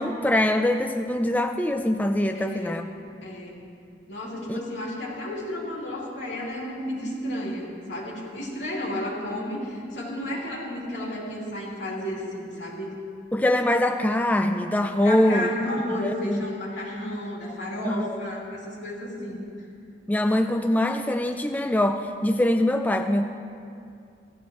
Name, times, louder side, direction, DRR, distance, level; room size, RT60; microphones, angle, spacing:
voice 1, 0.0-2.8 4.5-4.6 13.3-16.4 17.8-18.2 20.1-23.3, left 1 dB, 10° left, 6 dB, 0.3 m, -23 dB
voice 2, 2.3-2.8 3.2-3.6 4.1-12.9 15.0-19.4, left 1 dB, 85° left, -4 dB, 3.1 m, -32 dB
17.0 x 13.0 x 3.2 m, 2.4 s
head